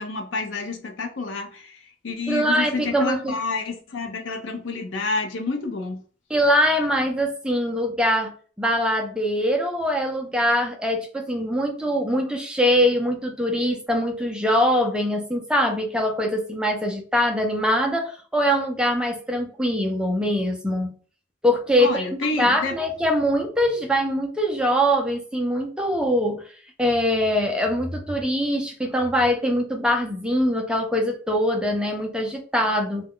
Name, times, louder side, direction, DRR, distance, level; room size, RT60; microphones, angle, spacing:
voice 1, 0.0-6.0 21.8-22.7, left 3 dB, 75° left, 0.6 m, -29 dB
voice 2, 2.3-3.4 6.3-8.3 8.6-20.9 21.4-22.1 22.4-26.4 26.8-33.1, equal, 5° right, 0.4 m, -23 dB
2.3 x 2.0 x 3.6 m
head